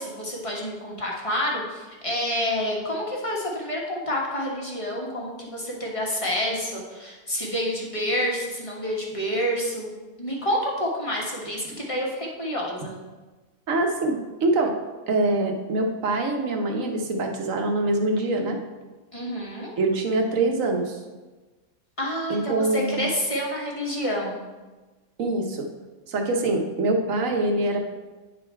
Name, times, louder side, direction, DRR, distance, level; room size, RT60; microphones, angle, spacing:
voice 1, 0.0-12.9 19.1-19.7 22.0-24.4, equal, 25° left, -3 dB, 1.3 m, -28 dB
voice 2, 13.7-18.6 19.8-21.0 22.3-23.1 25.2-25.7 26.1-27.8, right 2 dB, 65° right, 3 dB, 1.3 m, -24 dB
9.8 x 3.9 x 4.4 m, 1.2 s
omnidirectional pair, 1.5 m